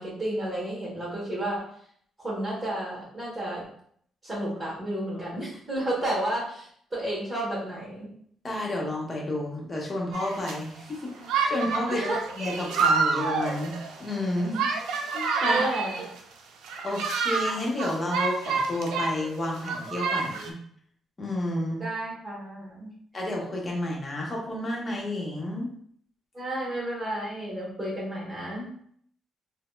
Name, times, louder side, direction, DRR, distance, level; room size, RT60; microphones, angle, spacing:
voice 1, 0.0-1.6 2.2-3.6 4.2-8.1 11.2-11.3 11.9-12.2 15.4-16.0 21.8-22.9 26.3-28.7, right 1 dB, 20° right, -9 dB, 1.4 m, -31 dB
voice 2, 8.4-12.0 12.4-13.7 14.0-14.7 15.1-15.6 16.8-20.6 21.2-21.8 23.1-25.7, left 1 dB, 30° left, -2 dB, 0.9 m, -31 dB
sound 1, 10.1-10.5 11.2-16.2 16.6-19.3 19.5-20.5, right 4 dB, 90° right, 0.4 m, -28 dB
4.0 x 2.1 x 2.4 m, 0.64 s
cardioid pair, 90°, 0 cm